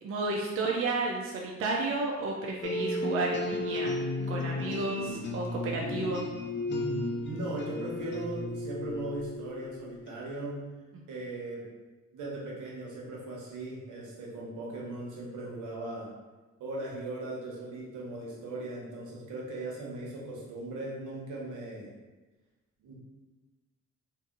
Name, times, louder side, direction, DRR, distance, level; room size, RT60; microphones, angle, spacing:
voice 1, 0.0-4.0 4.3-6.2 10.9-11.0, right 3 dB, 50° right, -1 dB, 0.5 m, -32 dB
sound 1, 2.6-10.2, left 2 dB, 40° left, 0.5 m, -34 dB
voice 2, 5.7-6.1 6.7-10.6 11.1-11.7 12.1-16.1 16.6-21.9 22.8-22.9, right 2 dB, 80° right, -4 dB, 1.0 m, -38 dB
2.7 x 2.6 x 3.7 m, 1.2 s
cardioid pair, 90°, 30 cm